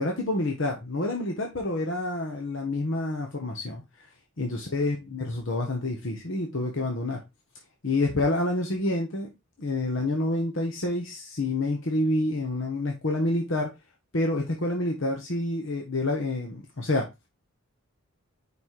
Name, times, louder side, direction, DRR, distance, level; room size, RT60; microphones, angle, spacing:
voice 1, 0.0-3.8 4.4-7.2 7.8-9.3 9.6-13.7 14.1-17.1, left 2 dB, 55° left, 1.1 m, -28 dB
5.3 x 4.1 x 4.6 m
head